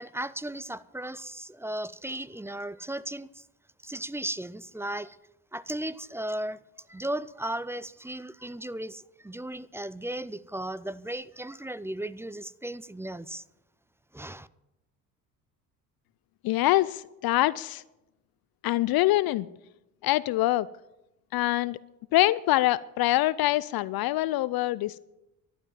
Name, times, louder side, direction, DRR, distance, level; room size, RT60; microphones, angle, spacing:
voice 1, 0.0-3.4 3.8-5.2 5.5-6.6 6.9-13.4 14.1-14.5, right 1 dB, 5° right, 0.5 m, -36 dB
voice 2, 16.4-17.8 18.6-19.5 20.0-20.7 21.3-21.8 22.1-25.1, left 16 dB, 50° left, 0.5 m, -24 dB
12.0 x 12.0 x 7.4 m
hypercardioid pair, 60°, 47 cm